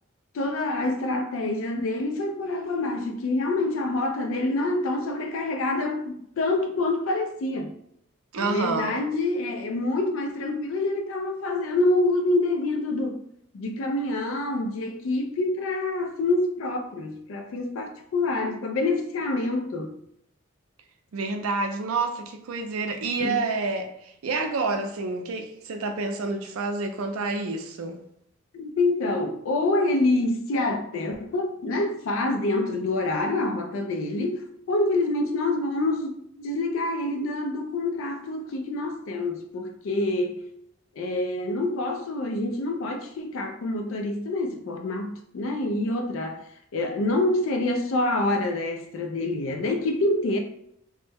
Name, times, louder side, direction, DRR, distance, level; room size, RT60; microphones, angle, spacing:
voice 1, 0.3-7.7 8.4-13.2 13.5-20.0 23.2-23.4 28.5-40.4 41.0-46.4 46.7-50.4, left 2 dB, 70° left, 0.4 m, -26 dB
voice 2, 8.3-9.0 21.1-28.0, right 3 dB, 85° right, 0.4 m, -28 dB
3.2 x 2.1 x 3.3 m
head